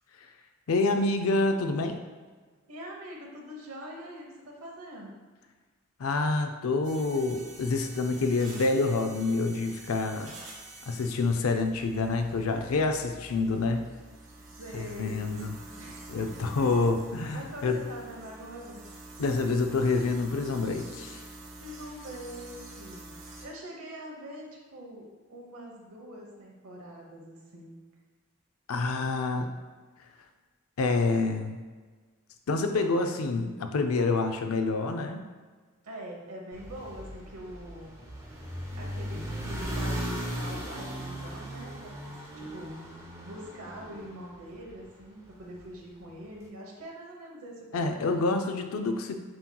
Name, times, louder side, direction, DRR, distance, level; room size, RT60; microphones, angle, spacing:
voice 1, 0.7-2.0 6.0-10.3 10.9-13.8 14.7-15.5 16.1-17.8 19.2-21.2 28.7-29.5 30.8-31.6 32.5-35.2 47.7-49.2, left 3 dB, 75° left, 5 dB, 0.4 m, -27 dB
voice 2, 2.7-5.3 14.6-15.3 15.8-16.0 16.5-16.8 17.3-18.9 21.6-27.8 35.8-38.0 38.4-42.8 43.2-48.3, equal, 80° right, -1 dB, 1.0 m, -44 dB
sound 1, 6.8-23.4, right 2 dB, 60° right, 1.1 m, -47 dB
sound 2, 36.5-44.9, equal, 15° right, 0.6 m, -37 dB
7.4 x 2.9 x 2.2 m, 1.4 s
head